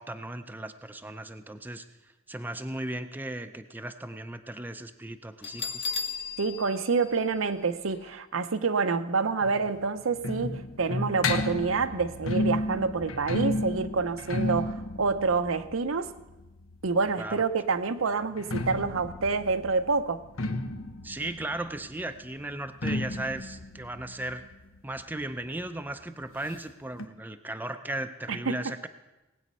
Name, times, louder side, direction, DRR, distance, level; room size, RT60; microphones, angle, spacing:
voice 1, 0.0-5.9 17.2-17.5 21.0-24.5 24.8-28.9, right 1 dB, 10° right, 8 dB, 0.5 m, -36 dB
Bell, 5.4-8.1, left 5 dB, 55° left, 1.0 m, -36 dB
voice 2, 6.4-16.1 16.8-20.2 28.3-28.6, right 4 dB, 75° right, 12 dB, 0.7 m, -27 dB
sound 1, 9.4-17.1 18.2-25.6 25.9-26.0 26.2-26.3 27.0-27.1, left 2 dB, 85° left, 1.0 m, -33 dB
19.0 x 8.6 x 5.4 m, 1.0 s
head